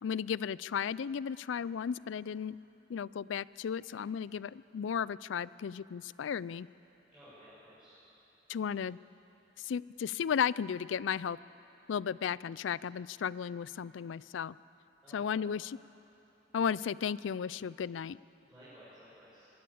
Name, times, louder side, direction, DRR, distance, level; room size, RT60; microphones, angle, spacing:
voice 1, 0.0-2.6 2.9-6.7 8.5-9.0 9.6-11.4 11.9-14.6 15.1-15.8 16.5-18.2, left 7 dB, 90° left, 20 dB, 0.4 m, -34 dB
voice 2, 7.1-7.9 15.0-15.6 18.4-19.5, equal, 5° right, -14 dB, 7.0 m, -56 dB
22.5 x 15.5 x 8.6 m, 3.0 s
head